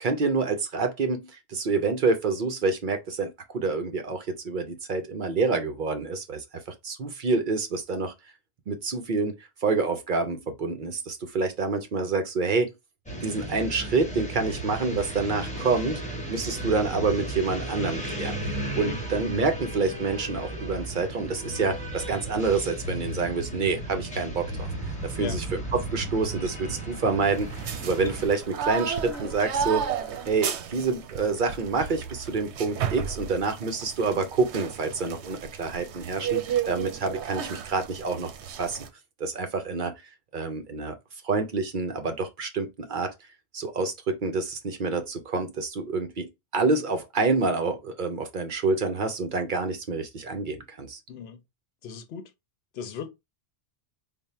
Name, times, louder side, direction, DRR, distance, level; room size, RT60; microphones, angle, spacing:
voice 1, 0.0-6.4 6.8-8.1 8.7-9.3 9.6-12.7 13.2-16.0 16.3-24.7 25.0-29.8 30.3-38.3 38.6-38.8 39.2-39.9 40.3-41.0 41.2-43.1 43.5-46.3 46.5-51.0, right 4 dB, 55° right, 0.7 m, -27 dB
sound 1, 13.1-28.3, right 1 dB, 5° left, 0.9 m, -35 dB
sound 2, 24.6-30.3, right 1 dB, 10° right, 1.9 m, -49 dB
sound 3, 27.2-38.9, right 8 dB, 85° right, 0.9 m, -33 dB
voice 2, 51.1-51.4 51.8-52.3 52.7-53.1, left 7 dB, 70° left, 0.8 m, -37 dB
3.5 x 2.1 x 4.1 m
omnidirectional pair, 1.1 m